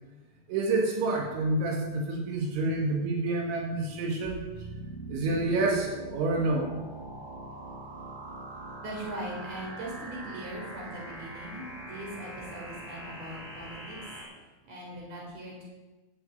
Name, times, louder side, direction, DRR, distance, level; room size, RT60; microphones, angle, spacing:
voice 1, 0.5-4.4 5.1-6.7, right 2 dB, 85° right, 1 dB, 4.2 m, -28 dB
sound 1, 4.2-14.2, right 1 dB, 60° right, 7.9 m, -42 dB
voice 2, 8.8-14.0 14.7-15.6, right 1 dB, 35° right, -2 dB, 5.2 m, -40 dB
12.0 x 8.2 x 9.1 m, 1.1 s
omnidirectional pair, 5.2 m